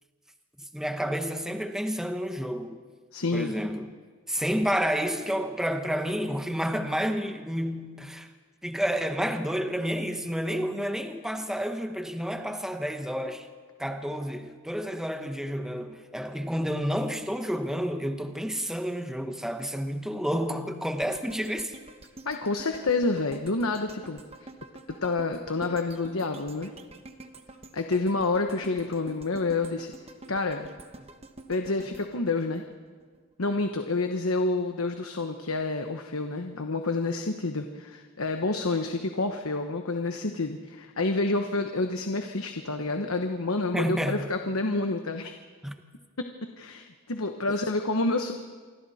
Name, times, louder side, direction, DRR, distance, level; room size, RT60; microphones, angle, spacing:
voice 1, 0.6-2.8 3.3-3.9 4.3-8.3 8.6-13.5 13.8-21.7 43.7-44.3 45.6-45.7, equal, ahead, 1.0 m, -30 dB
voice 2, 3.1-3.5 22.2-24.5 25.0-26.7 27.7-29.9 30.3-30.7 31.5-32.6 33.4-45.3 46.2-46.3 46.6-48.3, left 3 dB, 70° left, 1.1 m, -28 dB
sound 1, 21.0-33.2 33.6-33.7, right 2 dB, 25° right, 1.1 m, -48 dB
27.5 x 25.0 x 4.3 m
head